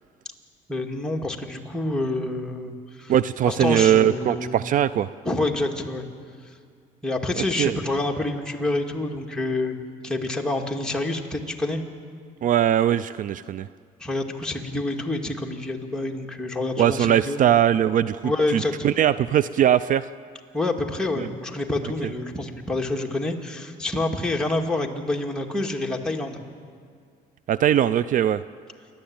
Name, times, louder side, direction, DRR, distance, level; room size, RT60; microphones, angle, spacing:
voice 1, 0.7-3.1 3.5-4.6 5.2-6.1 7.0-9.8 10.0-11.8 14.0-17.4 18.2-18.9 20.5-26.4, left 2 dB, 5° left, 0 dB, 2.1 m, -27 dB
voice 2, 3.1-5.1 7.6-7.7 12.4-13.7 16.8-20.1 21.2-21.3 27.5-28.4, right 10 dB, 50° right, 16 dB, 0.4 m, -20 dB
28.0 x 12.0 x 8.8 m, 2.1 s
cardioid pair, 110°, 17 cm